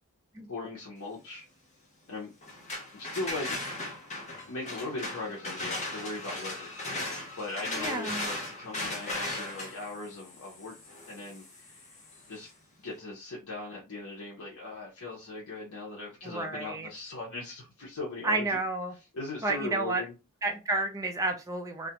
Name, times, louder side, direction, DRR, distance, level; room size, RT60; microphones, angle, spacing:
voice 1, 0.5-1.5 2.1-2.3 2.9-3.6 4.5-6.8 7.4-10.8 11.1-12.0 12.3-12.5 12.8-18.6 19.1-20.1, left 3 dB, 70° left, 0.7 m, -39 dB
sound 1, 2.4-12.2, left 2 dB, 30° left, 0.6 m, -37 dB
voice 2, 7.8-8.3 16.2-16.9 18.2-18.9 19.4-20.0 20.4-21.9, right 2 dB, 15° right, 0.3 m, -31 dB
2.4 x 2.1 x 2.8 m
head